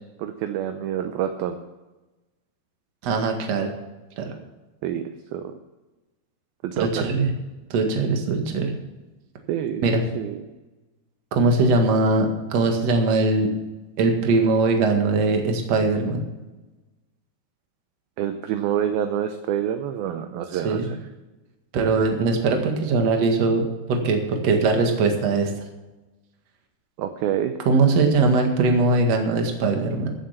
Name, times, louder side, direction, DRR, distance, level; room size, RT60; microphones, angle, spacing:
voice 1, 0.2-1.6 4.8-5.5 6.6-7.1 9.5-10.5 18.2-21.0 27.0-27.5, right 10 dB, 75° right, 7 dB, 2.3 m, -27 dB
voice 2, 3.0-3.7 4.2-4.3 6.8-7.3 7.7-8.7 9.8-10.0 11.3-13.5 14.0-16.2 20.5-20.9 21.7-25.5 27.7-30.1, right 3 dB, 50° right, 3 dB, 2.3 m, -21 dB
15.5 x 7.6 x 5.8 m, 1.1 s
omnidirectional pair, 4.9 m